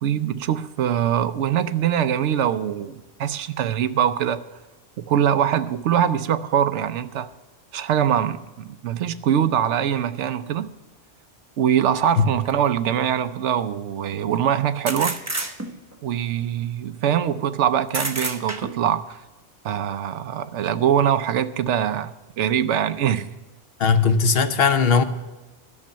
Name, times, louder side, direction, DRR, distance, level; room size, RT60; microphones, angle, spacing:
voice 1, 0.0-4.4 5.0-7.3 7.7-10.7 11.6-15.2 16.0-19.2 19.6-23.3, right 9 dB, 80° right, 1.0 m, -23 dB
sound 1, 12.5-12.6 14.9-16.0 17.9-18.9, right 2 dB, 15° right, 0.8 m, -29 dB
voice 2, 23.8-25.0, left 5 dB, 60° left, 1.0 m, -18 dB
12.0 x 6.6 x 8.6 m
omnidirectional pair, 1.2 m